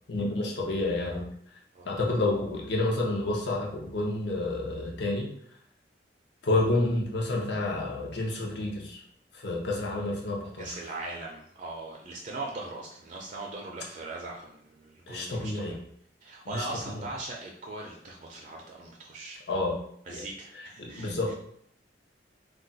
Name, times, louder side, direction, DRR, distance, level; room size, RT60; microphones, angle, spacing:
voice 1, 0.1-1.2 1.8-5.3 6.4-9.0 9.4-10.7 15.1-15.7 16.5-16.7 16.9-17.0 19.5-19.8 20.1-20.2 20.8-21.3, left 2 dB, 75° left, -1 dB, 0.7 m, -29 dB
voice 2, 10.6-15.8 16.2-19.4 20.1-21.3, right 2 dB, 45° right, -1 dB, 0.4 m, -40 dB
2.3 x 2.3 x 3.8 m, 0.68 s
head